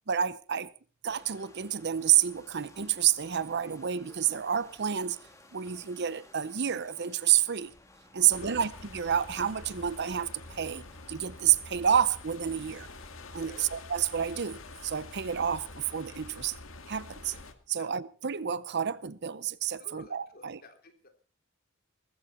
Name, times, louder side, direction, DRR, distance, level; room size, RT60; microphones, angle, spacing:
voice 1, 0.1-0.7 1.0-5.2 5.5-7.7 8.1-12.9 13.3-16.5 16.9-17.3 17.7-20.6, right 9 dB, 55° right, 0.7 m, -29 dB
sound 1, 1.1-13.7, left 1 dB, 15° left, 2.8 m, -57 dB
voice 2, 8.2-8.6 13.3-13.7 17.1-17.4 17.7-17.9 19.8-21.1, left 2 dB, 45° left, 3.6 m, -52 dB
sound 2, 8.3-17.5, left 3 dB, 70° left, 2.1 m, -47 dB
18.5 x 15.5 x 4.3 m
head